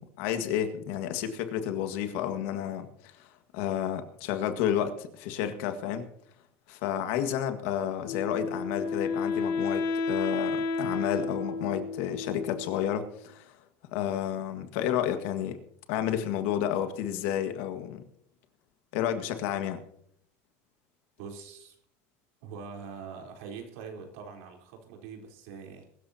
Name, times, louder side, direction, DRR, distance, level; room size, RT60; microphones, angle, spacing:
voice 1, 0.0-2.9 3.2-6.1 6.7-13.5 13.9-15.6 15.9-18.0 18.9-19.8, left 10 dB, 75° left, 1.8 m, -31 dB
Wind instrument woodwind instrument, 8.0-13.1, left 4 dB, 50° left, 1.4 m, -32 dB
voice 2, 21.2-21.8 22.4-25.9, right 5 dB, 85° right, 4.0 m, -43 dB
22.0 x 13.5 x 2.9 m
supercardioid pair, 135°, 7 cm